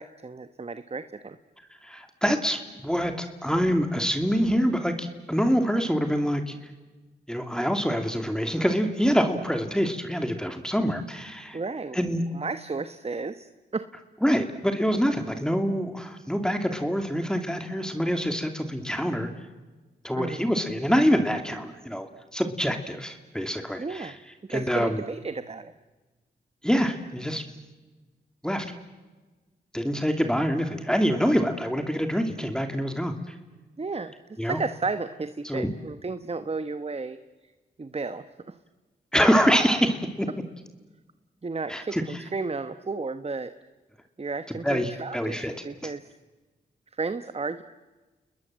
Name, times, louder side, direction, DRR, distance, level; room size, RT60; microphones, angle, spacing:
voice 1, 0.0-1.4 11.5-12.0 12.3-13.9 20.2-20.5 23.8-24.1 24.5-25.7 33.8-34.1 34.4-37.2 37.8-38.6 41.4-43.5 44.2-46.0 47.0-47.6, right 4 dB, 35° right, 11 dB, 1.2 m, -33 dB
voice 2, 1.8-6.5 7.3-11.6 11.9-12.2 14.2-19.3 20.0-24.1 24.5-25.0 26.6-27.4 28.4-28.7 29.7-33.3 34.4-34.6 35.4-35.7 39.1-40.3 41.7-42.0 44.6-45.5 45.8-45.9, equal, 5° left, 6 dB, 2.8 m, -25 dB
29.5 x 21.0 x 7.6 m, 1.2 s
cardioid pair, 50°, 19 cm